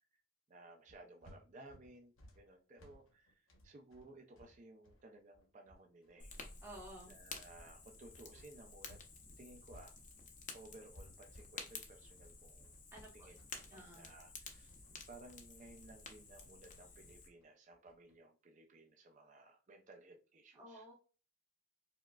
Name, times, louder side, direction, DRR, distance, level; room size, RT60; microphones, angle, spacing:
voice 1, 0.5-6.3 7.1-9.0 9.4-10.0 10.5-12.7 13.1-14.8 15.1-20.8, right 2 dB, 35° right, 3 dB, 0.4 m, -58 dB
sound 1, 0.9-9.1 9.4-18.2, equal, 70° left, 0.9 m, -63 dB
Fire, 6.2-17.3, left 4 dB, 35° left, 0.6 m, -53 dB
voice 2, 6.6-7.1 12.9-13.3 13.7-14.1 20.5-20.9, right 1 dB, 10° right, -4 dB, 0.8 m, -53 dB
4.8 x 2.1 x 2.2 m, 0.36 s
head